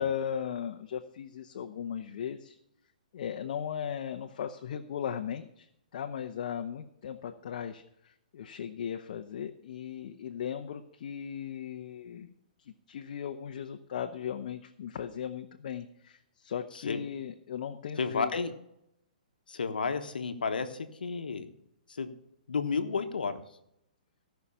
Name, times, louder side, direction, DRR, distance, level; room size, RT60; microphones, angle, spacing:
voice 1, 0.0-2.6 3.1-5.7 5.9-12.3 12.6-18.3, left 8 dB, 60° left, 5 dB, 0.9 m, -37 dB
voice 2, 18.0-18.5 19.5-21.5 21.9-22.1 22.5-23.4, left 5 dB, 90° left, 8 dB, 1.2 m, -32 dB
17.0 x 5.8 x 5.6 m, 0.80 s
hypercardioid pair, 145°, 5 cm